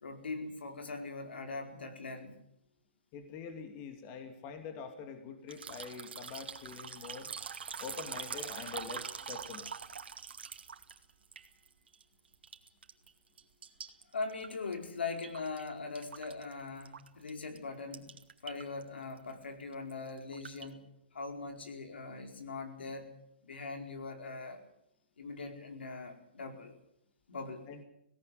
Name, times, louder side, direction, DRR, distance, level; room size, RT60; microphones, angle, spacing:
voice 1, 0.0-2.4 14.1-18.1 18.4-20.8 21.1-23.1 23.4-24.6 25.2-26.7 27.3-27.6, left 4 dB, 85° left, 5 dB, 4.5 m, -41 dB
voice 2, 3.1-7.3 7.8-9.7 27.7-27.8, left 6 dB, 30° left, 7 dB, 2.6 m, -45 dB
sound 1, 5.5-12.0 12.3-13.1 13.4-15.7 16.0-17.3 17.6-17.7 17.9-18.8 19.1-19.3 19.7-20.7, right 6 dB, 80° right, 2.2 m, -44 dB
17.5 x 17.5 x 9.4 m, 0.76 s
hypercardioid pair, 145°, 6 cm